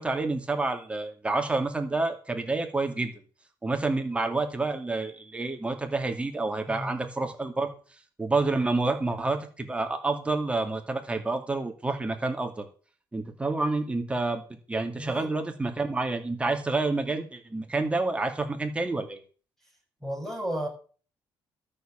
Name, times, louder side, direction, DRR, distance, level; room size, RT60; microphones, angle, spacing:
voice 1, 0.0-3.1 3.6-7.7 8.2-12.7 13.1-19.2, right 3 dB, 15° right, 5 dB, 2.4 m, -28 dB
voice 2, 6.7-7.0 15.0-15.3 20.0-20.7, right 1 dB, 5° left, 1 dB, 6.2 m, -33 dB
13.0 x 7.1 x 7.5 m, 0.39 s
cardioid pair, 125°, 8 cm